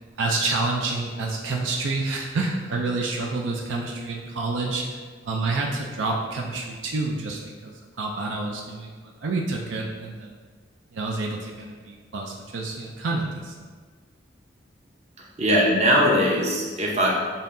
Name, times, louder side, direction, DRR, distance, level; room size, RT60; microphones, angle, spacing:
voice 1, 0.2-4.9 5.2-10.4 10.9-13.7, right 3 dB, 75° right, -1 dB, 0.5 m, -28 dB
voice 2, 15.4-17.1, equal, 35° right, -3 dB, 0.9 m, -20 dB
7.2 x 2.7 x 2.6 m, 1.5 s
head